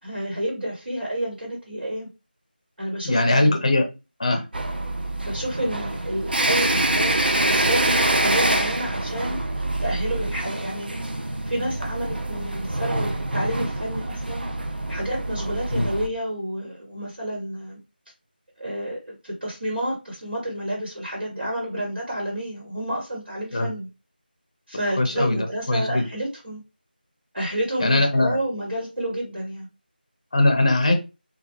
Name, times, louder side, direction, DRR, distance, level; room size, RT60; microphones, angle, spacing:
voice 1, 0.0-2.1 2.8-3.5 5.2-9.4 9.8-10.9 11.5-14.5 14.9-17.8 18.6-23.9 24.7-26.6 27.3-29.7, right 1 dB, 85° right, 1.2 m, -30 dB
voice 2, 3.0-3.8 4.2-4.4 15.7-15.9 23.5-23.7 25.0-26.0 27.8-28.4 30.3-30.9, left 2 dB, 40° left, 0.5 m, -20 dB
sound 1, 4.5-16.1, right 2 dB, 65° right, 0.5 m, -25 dB
2.2 x 2.1 x 2.9 m
figure-of-eight pair, 170°, 5 cm